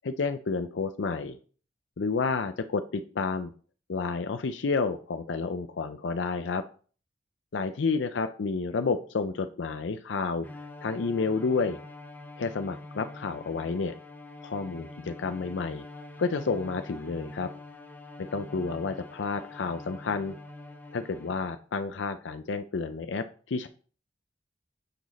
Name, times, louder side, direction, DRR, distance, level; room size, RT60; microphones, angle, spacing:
voice 1, 0.0-1.4 2.0-3.5 3.9-6.6 7.5-10.5 10.8-11.8 12.4-13.9 14.4-15.8 16.2-17.5 18.3-20.4 20.9-23.7, left 4 dB, 85° left, 8 dB, 0.5 m, -30 dB
Bowed string instrument, 10.4-21.6, left 2 dB, 10° left, 0.7 m, -45 dB
6.7 x 6.3 x 4.1 m, 0.41 s
head